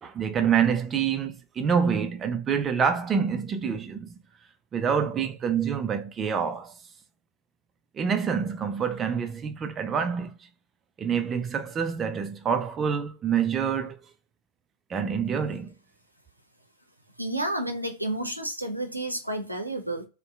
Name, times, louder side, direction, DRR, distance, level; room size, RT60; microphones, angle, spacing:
voice 1, 0.0-4.2 4.7-6.7 8.0-10.3 11.0-14.0 14.9-15.7, right 7 dB, 25° right, 0.4 m, -26 dB
voice 2, 17.2-20.1, right 1 dB, 85° right, 0.6 m, -30 dB
2.6 x 2.1 x 3.3 m
figure-of-eight pair, 90°, 0 cm